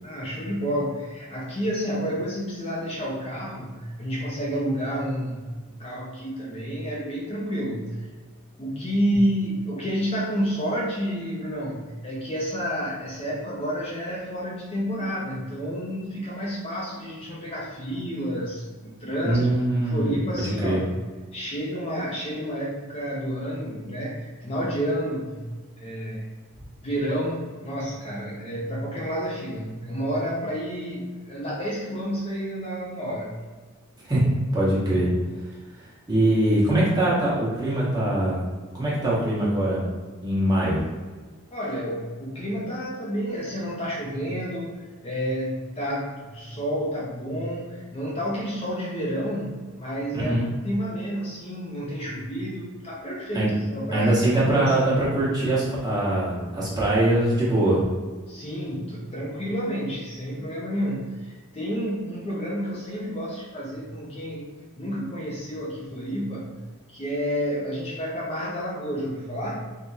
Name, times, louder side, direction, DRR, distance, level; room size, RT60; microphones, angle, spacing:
voice 1, 0.0-8.0 8.6-19.5 19.8-20.9 21.3-25.5 25.8-26.3 26.8-33.4 41.5-54.2 54.5-55.2 58.3-64.5 64.8-66.6 66.9-69.6, equal, 25° left, -5 dB, 0.5 m, -30 dB
voice 2, 19.2-20.1 20.6-20.8 34.1-34.2 34.5-35.1 36.1-38.4 38.7-39.9 40.2-40.8 50.1-50.5 53.3-53.5 53.9-57.8, right 1 dB, 20° right, -8 dB, 1.0 m, -22 dB
3.4 x 2.1 x 4.0 m, 1.4 s
head